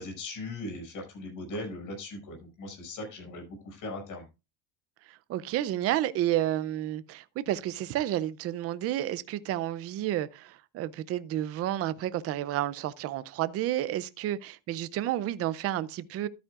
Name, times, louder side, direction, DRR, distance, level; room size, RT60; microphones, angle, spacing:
voice 1, 0.0-4.2, left 2 dB, 45° left, 6.0 m, -39 dB
voice 2, 5.3-16.3, right 13 dB, 35° right, 0.5 m, -31 dB
13.0 x 9.3 x 2.4 m
cardioid pair, 165°, 45 cm